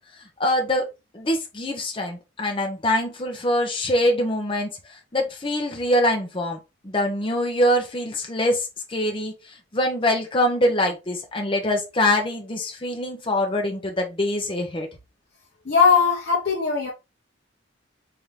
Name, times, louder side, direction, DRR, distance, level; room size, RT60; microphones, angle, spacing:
voice 1, 0.4-0.9 1.1-6.6 6.8-9.3 9.7-14.9, left 1 dB, 30° left, 0.8 m, -24 dB
voice 2, 15.6-16.9, left 5 dB, 55° left, 0.9 m, -19 dB
3.7 x 2.9 x 3.3 m
head